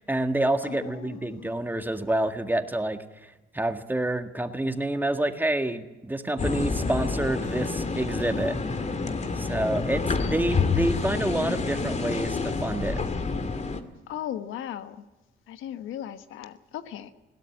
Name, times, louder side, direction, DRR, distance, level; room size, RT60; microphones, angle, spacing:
voice 1, 0.0-8.6 9.4-13.0, right 1 dB, 10° right, 7 dB, 1.7 m, -28 dB
voice 2, 0.6-1.5 14.1-15.0 15.5-17.1, left 11 dB, 90° left, 11 dB, 1.2 m, -37 dB
sound 1, 6.4-13.8, left 4 dB, 35° left, 2.0 m, -28 dB
20.5 x 17.0 x 8.5 m, 1.1 s
cardioid pair, 90°, 20 cm